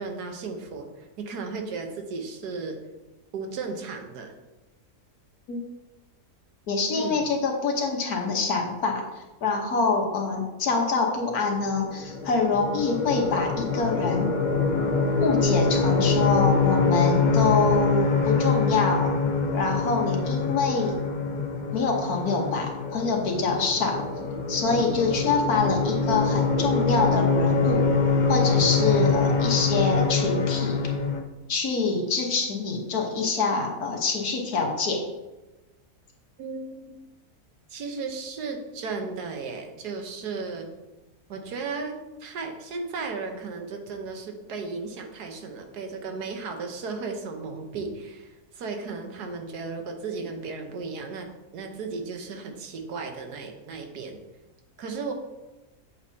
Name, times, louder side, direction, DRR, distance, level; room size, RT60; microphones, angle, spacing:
voice 1, 0.0-2.8 3.3-4.3 6.9-7.3 36.4-37.0 37.7-40.7 41.3-51.3 51.5-54.2 54.8-55.1, right 4 dB, 80° right, 4 dB, 1.5 m, -35 dB
voice 2, 6.7-14.3 15.2-19.1 19.5-21.0 21.7-24.0 24.5-27.9 28.3-30.8 31.5-35.1, left 4 dB, 70° left, 2 dB, 1.6 m, -25 dB
sound 1, 11.7-31.2, left 4 dB, 45° left, 0.6 m, -24 dB
8.0 x 7.8 x 2.8 m, 1.1 s
omnidirectional pair, 1.7 m